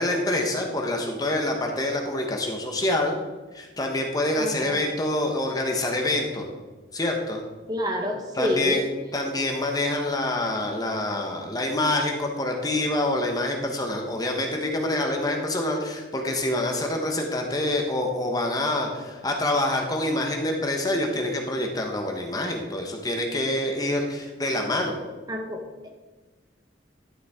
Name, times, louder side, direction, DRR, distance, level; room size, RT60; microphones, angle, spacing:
voice 1, 0.0-3.2 3.5-6.5 6.9-7.4 8.3-25.0, left 1 dB, 20° left, 2 dB, 1.0 m, -26 dB
voice 2, 7.7-8.8 25.3-25.6 25.8-25.9, left 1 dB, 20° right, 2 dB, 1.0 m, -27 dB
11.5 x 7.2 x 3.6 m, 1.3 s
head